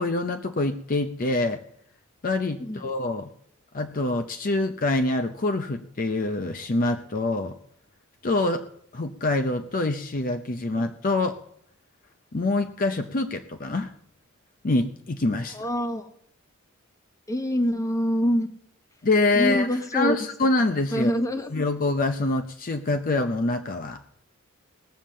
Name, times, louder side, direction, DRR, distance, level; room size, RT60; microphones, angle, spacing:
voice 1, 0.0-1.6 2.2-3.3 3.7-7.6 8.2-8.6 8.9-11.4 12.3-13.9 14.6-15.6 19.0-21.1 21.5-24.0, left 2 dB, 40° left, 7 dB, 0.6 m, -25 dB
voice 2, 15.5-16.1 17.3-18.5 19.3-20.2 20.9-21.5, equal, 15° left, 7 dB, 1.2 m, -25 dB
18.5 x 7.2 x 7.4 m, 0.67 s
head